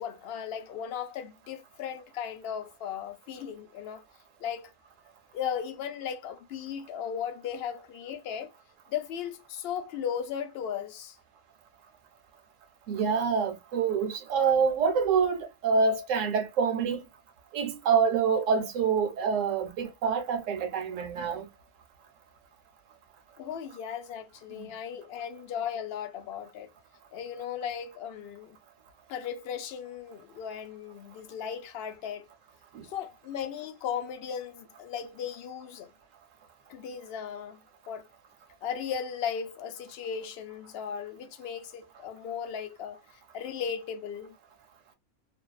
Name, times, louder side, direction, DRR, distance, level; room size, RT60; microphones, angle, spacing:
voice 1, 0.0-4.0 4.4-4.7 5.3-8.5 8.9-11.2 23.4-26.7 27.1-28.6 29.1-32.2 32.8-35.9 36.7-37.6 37.9-38.1 38.6-44.4, left 8 dB, 60° left, 0.7 m, -36 dB
voice 2, 12.9-17.0 17.5-21.5 24.6-24.7 32.7-32.9, right 6 dB, 90° right, 1.0 m, -26 dB
2.6 x 2.2 x 2.2 m
omnidirectional pair, 1.3 m